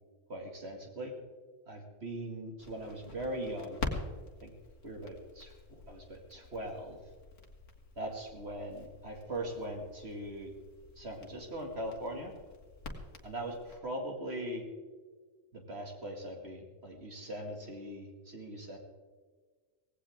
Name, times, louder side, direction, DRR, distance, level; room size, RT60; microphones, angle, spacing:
voice 1, 0.3-1.1 1.7-3.8 4.4-4.5 4.8-5.5 5.9-7.0 8.0-10.5 11.0-12.3 13.2-14.7 15.5-18.8, right 1 dB, 55° right, 2 dB, 2.5 m, -40 dB
Crackle, 2.6-13.8, left 3 dB, 70° left, 2.1 m, -46 dB
18.0 x 16.0 x 3.6 m, 1.4 s
omnidirectional pair, 1.3 m